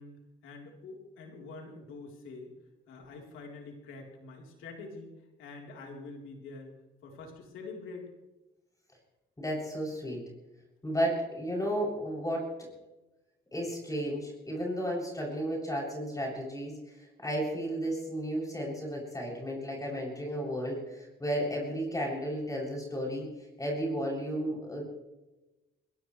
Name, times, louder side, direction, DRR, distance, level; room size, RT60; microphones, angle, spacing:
voice 1, 0.0-2.5 2.9-6.8 7.0-8.1, left 3 dB, 90° left, 0 dB, 3.8 m, -46 dB
voice 2, 9.4-10.2 10.8-12.5 13.5-23.3 23.6-24.9, equal, 15° left, -2 dB, 7.4 m, -33 dB
21.5 x 18.0 x 3.3 m, 1.1 s
cardioid pair, 90°, 20 cm